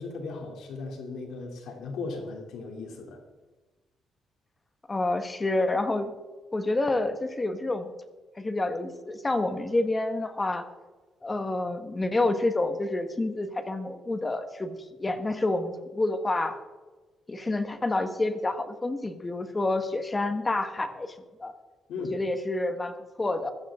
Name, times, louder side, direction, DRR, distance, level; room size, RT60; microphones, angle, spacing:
voice 1, 0.0-3.2 21.9-22.2, left 3 dB, 80° left, 2 dB, 3.2 m, -37 dB
voice 2, 4.9-6.1 6.5-7.9 8.4-10.6 11.2-16.6 17.3-21.1 21.4-21.5 22.0-23.5, left 2 dB, 20° left, 9 dB, 1.5 m, -28 dB
15.0 x 14.5 x 3.8 m, 1.3 s
cardioid pair, 90°, 0 cm